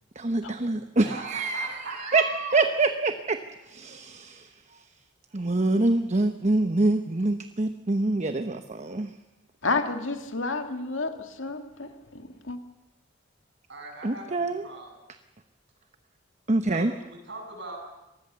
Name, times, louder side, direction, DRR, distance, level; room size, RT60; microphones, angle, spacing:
voice 1, 0.2-2.2 2.5-3.4 3.7-4.5 5.3-9.1 14.0-14.6 16.5-16.9, right 2 dB, 40° right, 8 dB, 1.0 m, -25 dB
voice 2, 1.0-2.6 13.7-14.9 16.7-17.8, right 3 dB, 65° right, 2 dB, 7.6 m, -39 dB
voice 3, 9.6-12.6, left 3 dB, 80° left, 6 dB, 2.3 m, -31 dB
25.0 x 20.0 x 6.9 m, 1.0 s
head